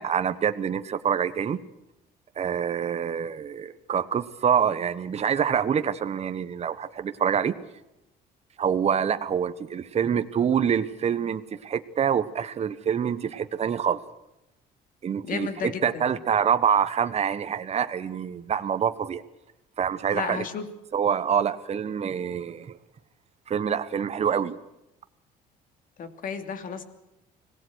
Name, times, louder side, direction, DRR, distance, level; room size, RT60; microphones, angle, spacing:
voice 1, 0.0-1.6 2.4-7.5 8.6-14.0 15.0-15.5 15.8-19.2 19.8-20.4 20.9-22.8 23.5-24.6, right 8 dB, 40° right, 10 dB, 1.2 m, -26 dB
voice 2, 15.2-16.2 20.1-20.7 26.0-26.8, left 6 dB, 55° left, 9 dB, 2.9 m, -33 dB
25.5 x 18.0 x 6.4 m, 0.89 s
cardioid pair, 110°, 17 cm